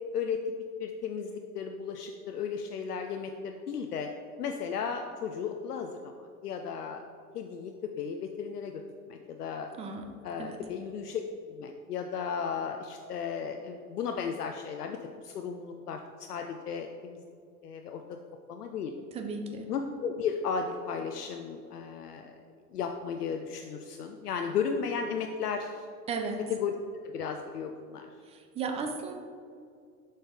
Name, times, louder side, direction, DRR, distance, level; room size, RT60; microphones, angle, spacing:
voice 1, 0.8-4.1 4.4-6.1 6.4-7.0 7.3-8.8 9.1-9.7 10.2-11.2 11.5-17.2 17.6-18.2 18.5-18.9 19.7-22.4 22.7-25.9 26.5-26.7 27.0-28.1, left 6 dB, 75° left, 4 dB, 0.6 m, -35 dB
voice 2, 9.8-10.1 10.4-10.6 19.1-19.7 26.1-26.4 28.2-29.1, right 4 dB, 15° right, 4 dB, 0.4 m, -35 dB
7.4 x 5.3 x 3.5 m, 2.3 s
figure-of-eight pair, 80°, 46 cm